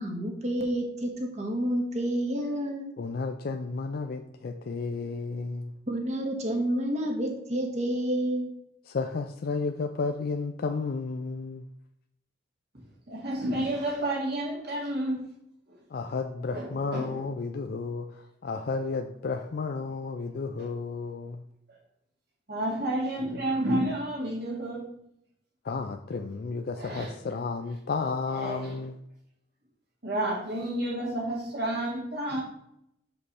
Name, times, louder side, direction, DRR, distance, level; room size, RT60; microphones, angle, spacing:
voice 1, 0.0-2.8 5.9-8.5, right 1 dB, 35° right, 1 dB, 1.4 m, -29 dB
voice 2, 3.0-5.7 8.9-11.7 15.9-21.4 25.6-29.0, left 4 dB, 50° left, 5 dB, 0.4 m, -32 dB
voice 3, 13.1-15.2 15.7-15.8 16.5-17.2 20.6-20.7 22.5-24.9 26.7-27.1 28.3-28.7 30.0-32.4, right 1 dB, 55° right, -2 dB, 2.2 m, -30 dB
6.3 x 5.2 x 4.2 m, 0.78 s
head